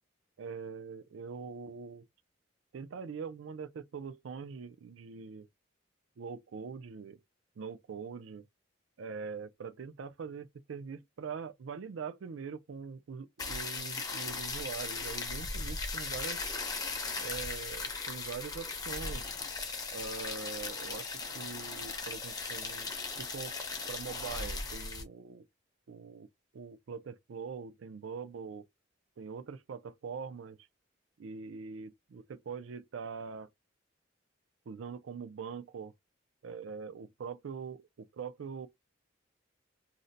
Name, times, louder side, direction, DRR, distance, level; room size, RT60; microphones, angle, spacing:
voice 1, 0.4-2.1 2.7-5.5 6.2-7.2 7.6-8.5 9.0-16.5 17.2-19.3 19.9-22.9 23.2-23.5 23.9-25.5 25.9-26.3 26.5-28.7 29.2-30.6 31.2-33.5 34.7-35.9 36.4-38.7, right 5 dB, 85° right, 0.4 m, -43 dB
sound 1, 13.4-25.0, left 4 dB, 20° left, 0.6 m, -38 dB
2.6 x 2.1 x 3.9 m
head